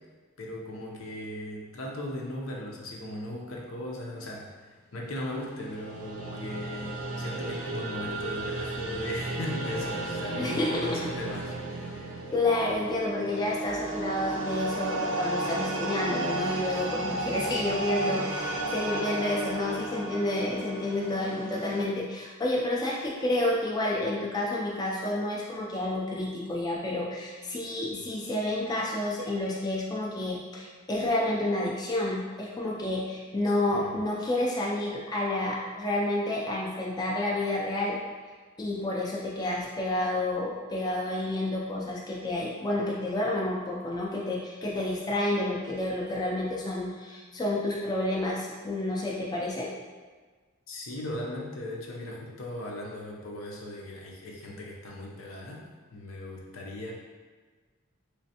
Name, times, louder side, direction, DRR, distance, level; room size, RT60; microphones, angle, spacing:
voice 1, 0.4-12.2 33.7-33.9 50.7-55.6 55.9-56.9, left 1 dB, 75° left, -2 dB, 0.6 m, -38 dB
sound 1, 5.4-21.9, right 2 dB, 75° right, 0.5 m, -33 dB
voice 2, 10.4-10.7 12.3-38.0 38.6-49.7, left 1 dB, 20° left, -4 dB, 0.4 m, -30 dB
3.2 x 3.1 x 2.8 m, 1.4 s
head